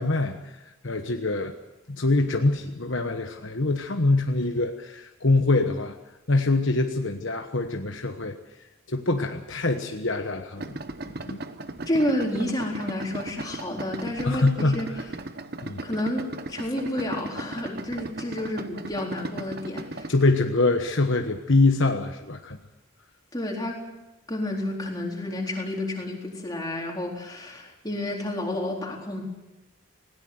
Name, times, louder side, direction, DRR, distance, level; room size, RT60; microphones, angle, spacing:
voice 1, 0.0-1.5 1.9-6.0 6.3-8.4 8.9-10.8 11.2-11.4 14.2-15.0 15.6-15.8 20.1-22.6, left 2 dB, 60° left, 5 dB, 1.2 m, -24 dB
Idling, 10.6-20.1, right 2 dB, 45° right, 1.0 m, -37 dB
voice 2, 11.9-14.9 15.8-20.1 23.3-23.8 24.3-29.2, left 1 dB, 20° left, -1 dB, 4.0 m, -30 dB
20.0 x 18.0 x 7.9 m, 0.98 s
head